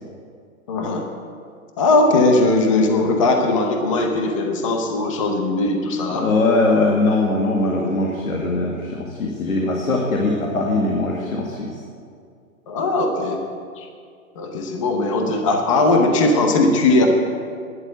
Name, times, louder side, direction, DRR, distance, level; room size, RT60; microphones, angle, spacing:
voice 1, 0.7-1.1 1.8-6.3 12.7-13.4 13.8-13.9 14.4-17.1, left 2 dB, 25° left, 3 dB, 0.9 m, -19 dB
voice 2, 6.1-11.7, left 2 dB, 80° left, -1 dB, 2.3 m, -21 dB
12.0 x 11.0 x 7.7 m, 2.3 s
hypercardioid pair, 175°, 42 cm